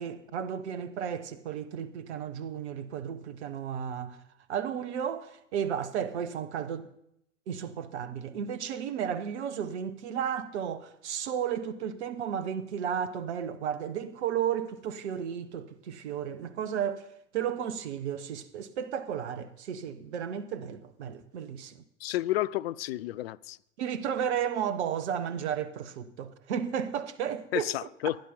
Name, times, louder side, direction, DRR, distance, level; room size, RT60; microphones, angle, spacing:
voice 1, 0.0-4.2 4.5-6.9 7.5-17.1 17.3-21.8 23.8-27.7, right 8 dB, 60° right, 1.1 m, -33 dB
voice 2, 22.0-23.6 27.5-28.2, left 15 dB, 55° left, 0.5 m, -31 dB
15.5 x 10.0 x 5.5 m
figure-of-eight pair, 85°, 38 cm